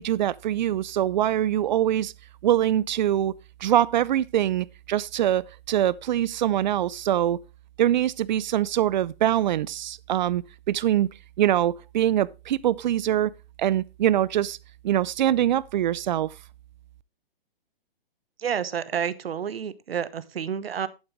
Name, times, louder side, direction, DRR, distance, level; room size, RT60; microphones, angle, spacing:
voice 1, 0.0-2.1 2.4-3.3 3.6-7.4 7.8-11.1 11.4-13.3 13.6-14.6 14.8-16.3, right 11 dB, 50° right, 0.5 m, -23 dB
voice 2, 18.4-20.9, right 8 dB, 85° right, 1.0 m, -29 dB
11.0 x 8.7 x 3.1 m
hypercardioid pair, 145°, 29 cm